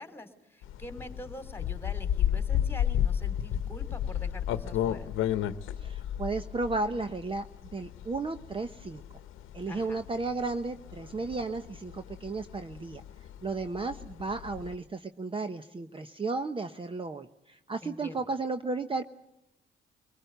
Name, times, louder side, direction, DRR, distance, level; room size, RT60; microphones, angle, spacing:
voice 1, 0.0-5.1 9.7-10.0 17.8-18.2, left 1 dB, 10° left, 9 dB, 3.0 m, -45 dB
sound 1, 0.6-14.7, left 10 dB, 90° left, 1.0 m, -33 dB
voice 2, 5.8-7.5 7.7-9.0 9.5-13.0 13.4-19.0, right 3 dB, 25° right, 9 dB, 0.9 m, -34 dB
23.5 x 19.5 x 8.0 m, 0.87 s
cardioid pair, 90°, 20 cm